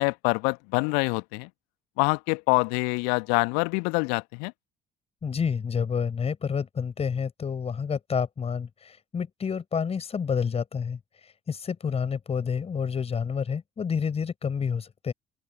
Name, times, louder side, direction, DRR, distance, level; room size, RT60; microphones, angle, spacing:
voice 1, 0.0-1.5 2.0-4.5, left 37 dB, 65° left, 1.5 m, -25 dB
voice 2, 5.2-11.0 11.5-15.1, left 6 dB, 35° left, 5.8 m, -29 dB
open air
figure-of-eight pair, 50°, 17 cm